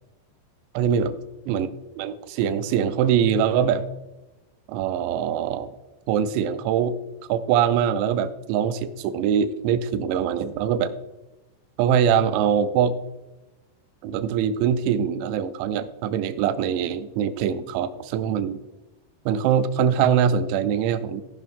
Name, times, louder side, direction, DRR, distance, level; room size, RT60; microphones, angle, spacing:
voice 1, 0.7-1.2 1.5-1.7 2.0-3.9 4.7-5.7 6.1-7.0 7.3-11.0 11.8-13.0 14.0-18.6 19.3-21.2, right 8 dB, 85° right, 13 dB, 2.9 m, -23 dB
16.5 x 5.6 x 3.6 m, 1.0 s
omnidirectional pair, 5.2 m